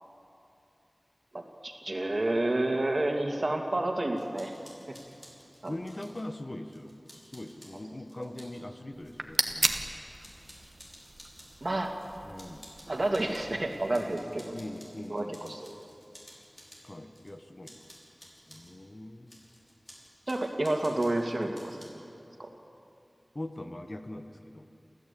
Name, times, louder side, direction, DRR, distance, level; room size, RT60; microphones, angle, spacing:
voice 1, 1.3-4.6 5.6-5.7 11.6-11.9 12.9-14.5 15.1-15.7 20.3-21.9 22.4-22.5, right 1 dB, 55° right, 2 dB, 2.6 m, -30 dB
sound 1, 4.1-6.3 6.7-8.6 9.0-9.9 10.2-11.6 12.0-17.4 17.6-18.7 19.3-21.9, equal, 20° left, 5.6 m, -54 dB
voice 2, 5.7-6.9 7.3-10.0 12.2-12.7 14.5-15.6 16.8-17.8 18.5-19.4 23.3-24.7, left 1 dB, 45° left, 7 dB, 1.3 m, -42 dB
sound 2, 8.9-14.1, right 2 dB, 70° right, 1.3 m, -36 dB
29.0 x 14.5 x 8.6 m, 2.7 s
wide cardioid pair, 60°, 0 cm